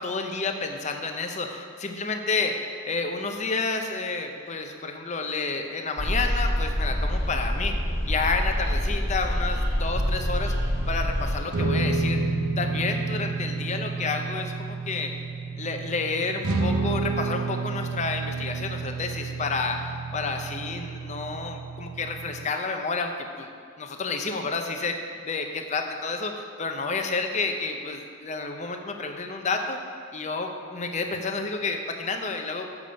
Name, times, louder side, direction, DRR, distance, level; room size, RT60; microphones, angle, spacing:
voice 1, 0.0-2.5 2.8-7.7 8.1-10.5 10.9-12.2 12.6-15.1 15.6-23.5 23.8-25.0 25.2-29.8 30.1-32.7, left 4 dB, 35° left, 5 dB, 0.6 m, -30 dB
sound 1, 6.0-11.4, equal, 10° right, 1.5 m, -26 dB
sound 2, 9.9-22.4, right 3 dB, 85° right, 0.7 m, -30 dB
7.1 x 6.8 x 5.1 m, 2.2 s
head